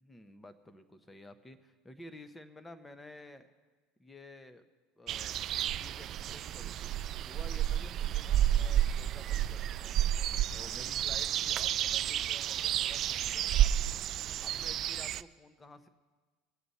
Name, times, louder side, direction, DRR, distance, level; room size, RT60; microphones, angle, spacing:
voice 1, 0.0-3.5 4.0-4.6 5.0-5.4 5.8-6.9 7.3-10.0 10.5-13.7 14.4-15.9, left 1 dB, 10° left, 10 dB, 1.0 m, -52 dB
sound 1, 5.1-15.2, right 11 dB, 45° right, 0.3 m, -31 dB
20.5 x 7.6 x 4.2 m, 1.4 s
supercardioid pair, 105°, 0 cm